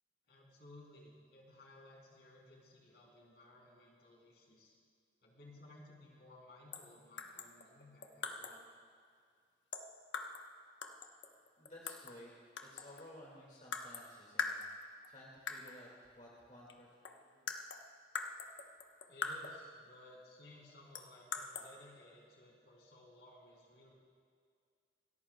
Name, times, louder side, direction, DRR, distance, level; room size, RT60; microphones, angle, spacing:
voice 1, 0.3-4.8 5.2-8.7 19.0-23.9, left 1 dB, 65° left, -2 dB, 3.0 m, -58 dB
sound 1, 6.7-6.9 7.2-8.7 9.7-10.5 10.8-12.2 12.6-13.1 13.7-14.1 14.4-15.1 15.5-15.8 16.7-16.8 17.0-19.7 20.9-21.7, left 5 dB, 90° left, 0.9 m, -43 dB
voice 2, 11.6-12.3 12.6-14.6 15.1-17.5, left 1 dB, 40° left, -4 dB, 1.9 m, -56 dB
27.5 x 14.0 x 2.2 m, 2.2 s
head